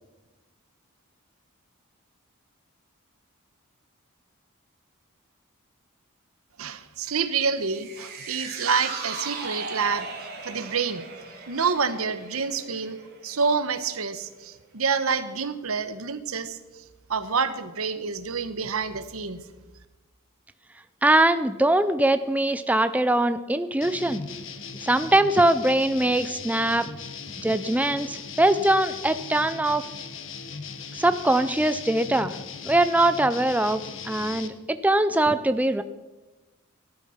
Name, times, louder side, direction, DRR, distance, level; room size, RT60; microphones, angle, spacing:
voice 1, 6.6-10.1 10.4-11.0 11.5-13.0 13.2-16.8 17.1-19.4, right 5 dB, 80° right, 12 dB, 1.1 m, -27 dB
sound 1, 7.6-14.1 14.4-14.5, right 4 dB, 45° right, 3.0 m, -38 dB
voice 2, 21.0-24.2 24.8-26.9 27.4-29.8 31.0-32.3 32.6-35.8, right 1 dB, 5° right, 11 dB, 0.4 m, -22 dB
sound 2, 23.8-34.5, left 5 dB, 60° left, 1.2 m, -38 dB
17.0 x 11.5 x 5.7 m, 1.2 s
head